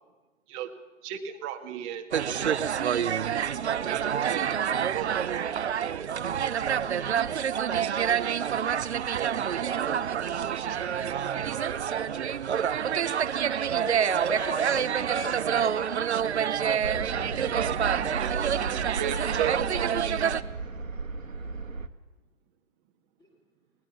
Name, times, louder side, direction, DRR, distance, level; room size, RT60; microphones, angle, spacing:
voice 1, 1.0-2.1 3.8-5.2 5.9-6.8 8.9-10.1 10.5-11.0 11.5-11.9 17.3-17.8 18.2-20.4, right 10 dB, 25° right, 5 dB, 1.8 m, -37 dB
sound 1, 2.1-20.4, right 8 dB, 60° right, 0.9 m, -27 dB
voice 2, 5.1-5.7 6.8-7.4 8.0-8.3 11.9-12.2 23.2-23.3, right 1 dB, 10° left, -2 dB, 4.3 m, -49 dB
voice 3, 13.7-15.8, left 3 dB, 60° left, 6 dB, 3.9 m, -38 dB
sound 2, 16.8-21.9, right 4 dB, 85° right, 1.7 m, -35 dB
21.0 x 19.5 x 7.2 m, 1.2 s
figure-of-eight pair, 135°, 39 cm